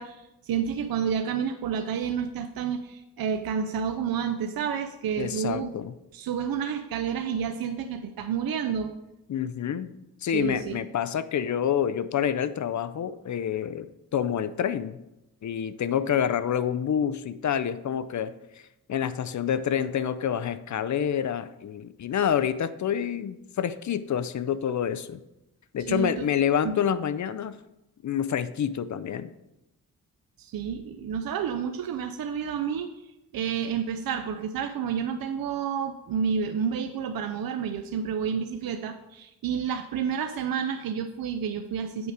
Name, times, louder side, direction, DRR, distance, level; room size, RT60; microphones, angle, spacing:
voice 1, 0.0-5.7 6.1-8.9 10.3-10.8 25.9-26.3 26.6-26.7 30.4-32.9 33.3-42.1, right 7 dB, 75° right, 7 dB, 0.6 m, -30 dB
voice 2, 5.2-5.9 9.3-9.9 10.2-13.9 14.1-15.0 15.4-18.3 18.9-25.2 25.7-27.5 28.0-29.3, left 9 dB, 55° left, 14 dB, 0.5 m, -27 dB
8.0 x 4.7 x 5.0 m, 0.93 s
wide cardioid pair, 100°, 36 cm